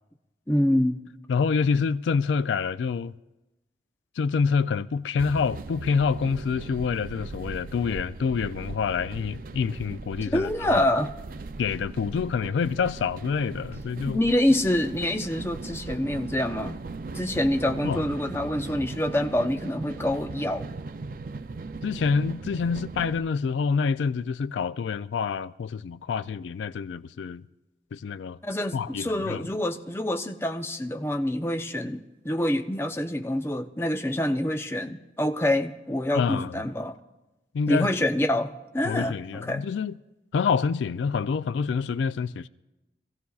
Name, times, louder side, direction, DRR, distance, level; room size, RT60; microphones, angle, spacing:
voice 1, 0.5-1.0 10.2-11.1 14.1-16.8 17.1-20.7 28.4-36.9 37.7-39.6, left 1 dB, 15° left, 0.6 m, -26 dB
voice 2, 1.3-3.1 4.2-10.9 11.6-14.2 17.8-18.0 21.8-27.4 27.9-28.4 28.7-29.5 36.1-36.6 37.5-37.9 38.8-39.9 40.3-42.5, left 5 dB, 90° left, 0.3 m, -27 dB
sound 1, 5.2-23.2, right 3 dB, 50° right, 0.4 m, -38 dB
25.0 x 15.5 x 2.4 m
head